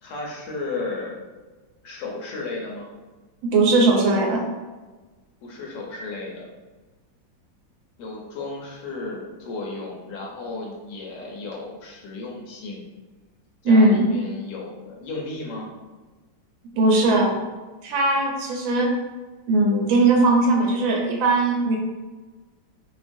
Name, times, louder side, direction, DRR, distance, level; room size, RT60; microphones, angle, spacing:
voice 1, 0.0-1.2 1.8-2.9 5.4-6.5 8.0-12.8 13.6-15.7, left 3 dB, 70° left, -2 dB, 1.1 m, -34 dB
voice 2, 3.4-4.4 13.6-14.1 16.7-17.3 17.8-18.9 19.5-21.8, right 2 dB, 85° right, 0 dB, 1.3 m, -19 dB
3.0 x 2.3 x 2.5 m, 1.3 s
omnidirectional pair, 2.1 m